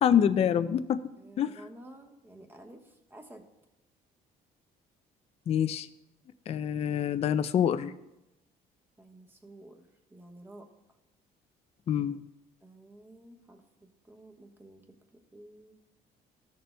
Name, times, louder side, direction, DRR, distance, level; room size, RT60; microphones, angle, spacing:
voice 1, 0.0-1.0 1.4-1.5 5.5-5.9 6.5-7.9 11.9-12.2, left 9 dB, 40° left, 12 dB, 0.4 m, -26 dB
voice 2, 1.2-3.4 9.0-9.8 10.1-10.7 12.6-14.8 15.3-15.7, right 1 dB, 15° right, 3 dB, 1.1 m, -51 dB
15.0 x 6.8 x 2.2 m, 0.93 s
cardioid pair, 110°, 17 cm